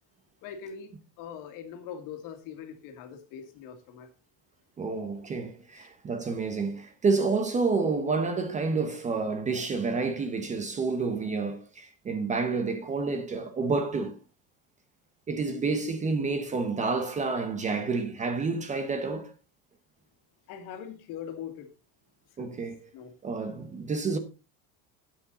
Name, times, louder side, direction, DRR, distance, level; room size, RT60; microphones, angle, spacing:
voice 1, 0.4-0.9 1.2-4.1 5.8-5.9 20.5-21.7 22.4-22.6 22.9-23.1, left 8 dB, 55° left, 2.1 m, -42 dB
voice 2, 4.8-14.2 15.3-19.3 22.4-22.9 23.2-24.2, right 4 dB, 20° right, 0.8 m, -29 dB
9.4 x 8.6 x 4.0 m
cardioid pair, 165°, 38 cm